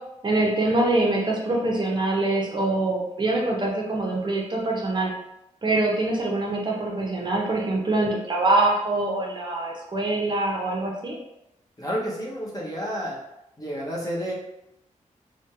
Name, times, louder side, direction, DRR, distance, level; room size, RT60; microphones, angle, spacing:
voice 1, 0.2-5.1 5.6-11.1, right 2 dB, 35° right, -2 dB, 0.7 m, -24 dB
voice 2, 11.8-13.2 13.6-14.3, equal, 30° left, -4 dB, 0.9 m, -30 dB
3.4 x 2.1 x 2.9 m, 0.84 s
wide cardioid pair, 105°, 13 cm